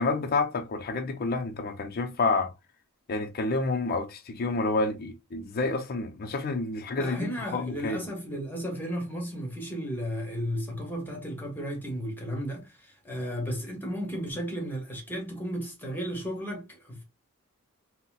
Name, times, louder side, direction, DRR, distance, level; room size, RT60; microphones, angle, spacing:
voice 1, 0.0-2.5 3.1-7.2 7.5-8.0, left 3 dB, 45° left, 0.5 m, -29 dB
voice 2, 7.0-17.0, equal, 10° left, 1.0 m, -34 dB
4.0 x 2.1 x 2.3 m
head